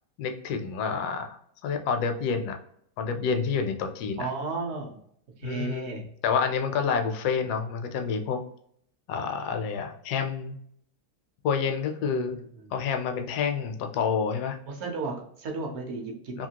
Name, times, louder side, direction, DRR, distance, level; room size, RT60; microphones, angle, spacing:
voice 1, 0.2-2.5 3.0-4.3 5.4-8.4 9.1-10.6 11.4-12.4 12.7-14.6 16.4-16.5, left 6 dB, 75° left, 5 dB, 1.1 m, -28 dB
voice 2, 4.2-5.0 5.4-6.0 12.1-12.4 14.8-16.5, right 4 dB, 55° right, 1 dB, 0.8 m, -34 dB
2.9 x 2.7 x 2.8 m, 0.67 s
omnidirectional pair, 1.9 m